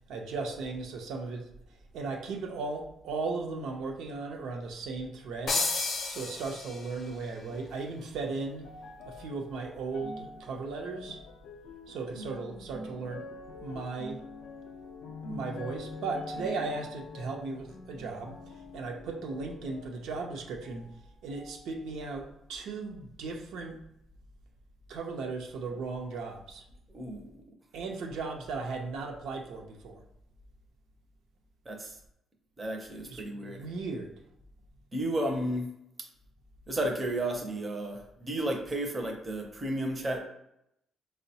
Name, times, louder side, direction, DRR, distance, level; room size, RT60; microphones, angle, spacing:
voice 1, 0.1-1.5 1.9-5.6 6.1-8.6 9.1-11.2 11.9-13.3 13.6-14.2 15.3-18.4 18.7-20.9 21.2-23.8 24.9-26.6 27.7-30.0 33.1-34.1, right 4 dB, 80° right, 2 dB, 0.6 m, -36 dB
sound 1, 5.5-7.1, left 3 dB, 40° left, 0.5 m, -31 dB
sound 2, 7.5-21.0 21.3-22.2 22.9-23.0, left 2 dB, 90° left, 0.4 m, -45 dB
voice 2, 26.9-27.4 31.7-32.0 32.6-33.6 34.9-35.7 36.7-40.2, right 1 dB, 15° right, 1 dB, 0.5 m, -33 dB
4.6 x 2.1 x 2.7 m, 0.79 s
cardioid pair, 180°, 0 cm